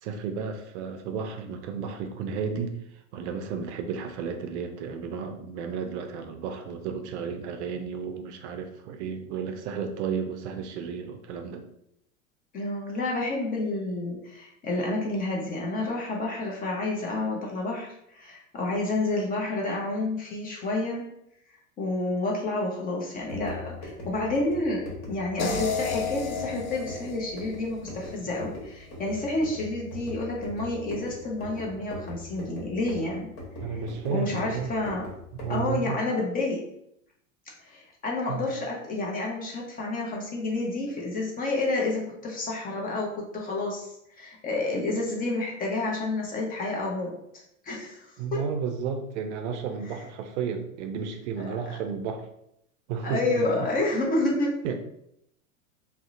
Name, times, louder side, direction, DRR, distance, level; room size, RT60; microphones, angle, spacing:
voice 1, 0.0-11.6 33.6-34.7 35.4-36.0 38.3-38.5 48.2-52.3 52.9-53.5 54.6-54.8, right 6 dB, 60° right, 5 dB, 0.5 m, -33 dB
voice 2, 12.5-21.0 21.8-33.3 33.7-33.8 34.1-35.0 35.5-36.6 37.6-47.1 47.6-48.4 51.4-51.8 53.0-54.5, left 2 dB, 20° left, -2 dB, 0.5 m, -29 dB
sound 1, 23.2-35.8, left 2 dB, 55° left, 1.1 m, -41 dB
sound 2, 25.4-28.5, left 4 dB, 85° left, 0.6 m, -32 dB
2.6 x 2.0 x 2.5 m, 0.76 s
hypercardioid pair, 95°, 41 cm